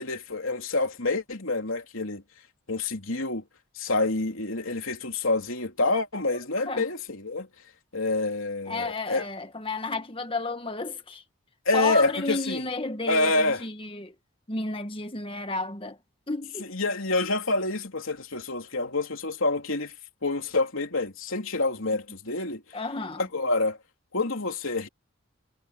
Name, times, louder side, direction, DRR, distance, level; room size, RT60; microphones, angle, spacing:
voice 1, 0.0-2.2 2.7-3.4 3.7-7.5 7.9-9.2 11.6-12.6 13.1-13.6 16.7-19.9 20.2-22.6 23.2-23.8 24.1-24.9, left 2 dB, 70° left, 3.3 m, -27 dB
voice 2, 8.7-11.2 11.7-14.1 14.5-16.0 16.3-16.7 22.7-23.3, left 2 dB, 25° left, 1.7 m, -32 dB
head